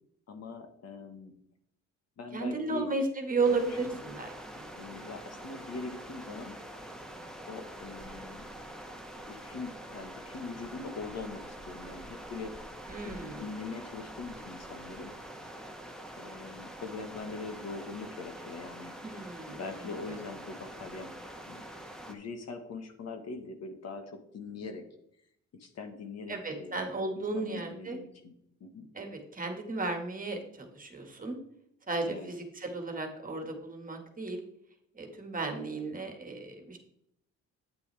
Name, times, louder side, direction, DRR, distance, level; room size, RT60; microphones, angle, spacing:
voice 1, 0.3-1.3 2.2-2.9 3.8-4.0 4.8-6.5 7.4-8.4 9.3-12.5 13.0-15.1 16.2-18.9 19.6-21.1 21.5-21.6 22.1-24.8 25.6-26.8 27.2-28.3 28.6-28.9 32.1-32.3, left 4 dB, 55° left, 7 dB, 1.5 m, -42 dB
voice 2, 2.3-4.7 12.9-13.4 19.0-19.6 20.1-20.2 26.3-28.0 28.9-31.4 31.9-34.4 34.9-36.8, right 3 dB, 25° right, 4 dB, 1.9 m, -34 dB
sound 1, 3.4-22.1, right 1 dB, ahead, 1.4 m, -45 dB
8.9 x 8.4 x 3.4 m, 0.74 s
cardioid pair, 90°, 30 cm